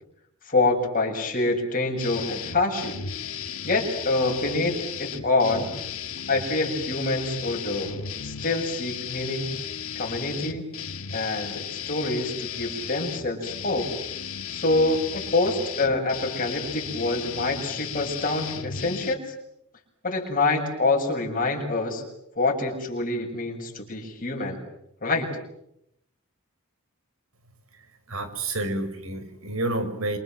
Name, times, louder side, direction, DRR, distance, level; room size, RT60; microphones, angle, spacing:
voice 1, 0.5-3.0 3.6-5.7 6.3-9.5 9.9-10.7 11.1-13.9 14.5-15.0 15.3-19.3 20.0-22.0 22.4-24.6 25.0-25.3, left 2 dB, 40° left, 1 dB, 7.6 m, -26 dB
sound 1, 2.0-19.1, left 8 dB, 70° left, 2.3 m, -35 dB
voice 2, 28.1-30.2, right 2 dB, 65° right, 10 dB, 5.5 m, -29 dB
28.0 x 27.0 x 7.7 m, 0.79 s
head